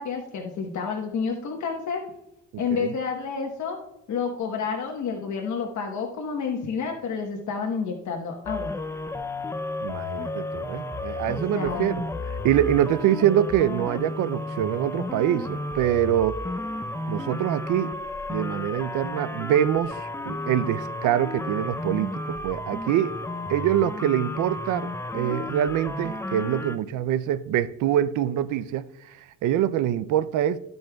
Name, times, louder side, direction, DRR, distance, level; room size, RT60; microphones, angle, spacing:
voice 1, 0.0-2.0 2.6-3.8 4.1-8.8 11.3-12.1, left 5 dB, 70° left, 1.2 m, -30 dB
voice 2, 2.5-2.9 9.8-12.1 12.4-16.4 17.1-17.9 18.3-23.1 23.5-30.6, right 11 dB, 80° right, 0.5 m, -25 dB
sound 1, 8.4-26.8, left 2 dB, 10° left, 0.5 m, -33 dB
13.5 x 5.3 x 2.3 m
cardioid pair, 90°, 30 cm